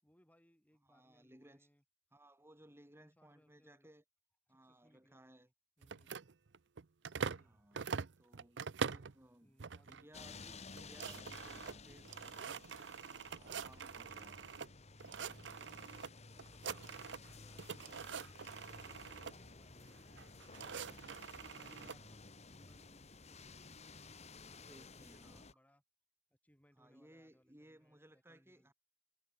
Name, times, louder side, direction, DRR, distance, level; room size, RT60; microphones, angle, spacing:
voice 1, 0.0-1.8 2.9-3.9 4.5-5.4 5.8-6.2 7.2-7.7 9.4-9.9 16.0-18.5 19.1-20.6 20.9-22.1 22.4-25.8 26.4-28.7, equal, 10° left, 5.9 m, -71 dB
voice 2, 0.8-1.7 2.1-4.0 4.5-5.5 7.4-9.6 9.9-12.8 13.3-14.4 21.6-22.2 24.5-25.5 26.8-28.7, right 1 dB, 15° right, 4.3 m, -62 dB
sound 1, 5.8-7.5 7.7-9.1 9.6-10.0 10.4-10.5 10.7-14.7 15.0-16.1 16.4-17.3 17.6-19.3 20.1-22.0, right 6 dB, 80° right, 0.7 m, -44 dB
sound 2, 10.1-25.5, left 3 dB, 40° left, 1.9 m, -55 dB
head